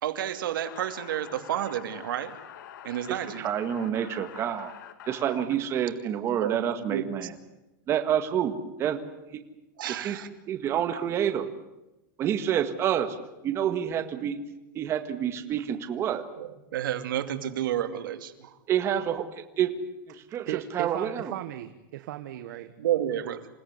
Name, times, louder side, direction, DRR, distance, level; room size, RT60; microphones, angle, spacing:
voice 1, 0.0-2.4 2.8-3.5 6.4-7.3 9.8-10.3 16.4-18.6 22.8-23.5, right 11 dB, 90° right, 8 dB, 2.6 m, -31 dB
sound 1, 0.6-5.5, left 10 dB, 70° left, 2.9 m, -46 dB
voice 2, 3.1-4.7 5.1-7.3 7.9-9.0 9.3-9.4 10.0-10.2 10.5-11.5 12.2-13.2 13.4-14.4 14.8-16.2 18.7-19.7 20.1-21.3, right 9 dB, 25° right, 7 dB, 1.9 m, -28 dB
voice 3, 20.4-22.7, right 13 dB, 65° right, 9 dB, 1.5 m, -37 dB
28.5 x 17.5 x 9.6 m, 0.95 s
supercardioid pair, 165°, 11 cm